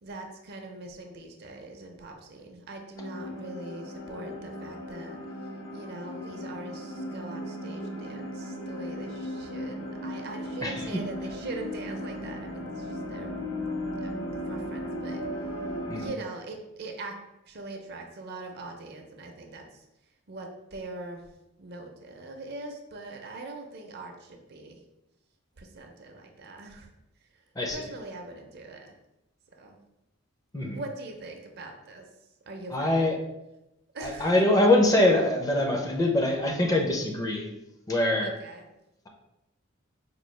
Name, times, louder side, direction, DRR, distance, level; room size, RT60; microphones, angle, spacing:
voice 1, 0.0-5.2 5.7-13.3 14.0-14.1 14.5-15.2 15.9-17.2 17.5-19.8 20.3-21.2 21.6-24.8 25.6-26.9 27.7-28.9 29.6-29.8 30.7-32.1 32.5-33.2 33.9-34.3 38.2-38.6, right 2 dB, 50° right, 3 dB, 0.5 m, -42 dB
sound 1, 3.0-16.1, left 1 dB, 75° left, 0.9 m, -36 dB
voice 2, 32.7-33.1 34.0-37.5 37.9-38.3, left 1 dB, 15° left, 1 dB, 0.5 m, -23 dB
4.5 x 2.3 x 3.2 m, 0.90 s
head